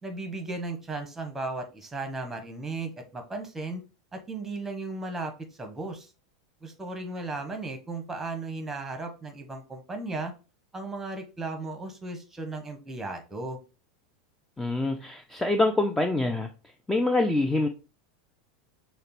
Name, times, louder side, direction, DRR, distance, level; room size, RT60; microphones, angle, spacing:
voice 1, 0.0-3.8 4.1-5.3 5.6-6.1 6.6-10.3 10.7-13.6, right 3 dB, 10° right, 5 dB, 1.0 m, -35 dB
voice 2, 14.6-16.5 16.9-17.7, left 2 dB, 10° left, 6 dB, 0.4 m, -25 dB
6.4 x 2.2 x 3.0 m, 0.32 s
figure-of-eight pair, 85°, 2 cm